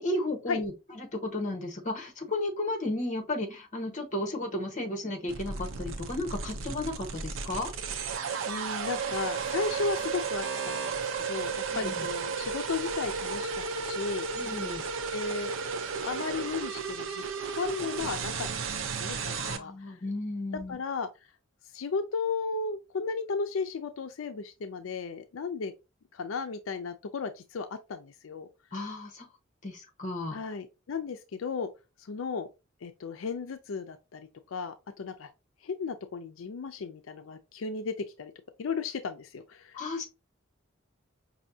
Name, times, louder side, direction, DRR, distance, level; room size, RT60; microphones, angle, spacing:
voice 1, 0.0-7.7 11.7-12.1 14.3-14.8 19.3-20.8 28.7-29.3 29.6-30.4 39.7-40.1, left 1 dB, 40° left, 1.2 m, -34 dB
sound 1, 5.3-19.6, right 5 dB, 80° right, 0.6 m, -34 dB
voice 2, 8.2-11.0 11.3-14.3 15.1-15.5 16.0-17.2 17.5-19.7 20.7-21.1 21.7-25.7 26.1-28.5 30.3-31.7 32.1-32.5 32.8-35.3 35.6-38.3 38.6-39.8, left 4 dB, 90° left, 0.4 m, -35 dB
5.4 x 2.7 x 2.7 m
head